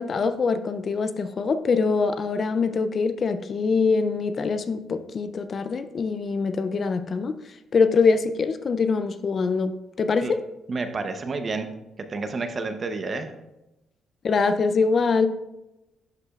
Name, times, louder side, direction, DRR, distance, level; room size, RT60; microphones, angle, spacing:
voice 1, 0.0-7.3 7.7-9.7 10.0-10.4 14.2-15.3, left 4 dB, 45° left, 10 dB, 0.5 m, -23 dB
voice 2, 10.7-11.7 12.1-13.3, right 3 dB, 40° right, 8 dB, 0.8 m, -29 dB
11.5 x 5.0 x 2.4 m, 0.94 s
cardioid pair, 90°, 0 cm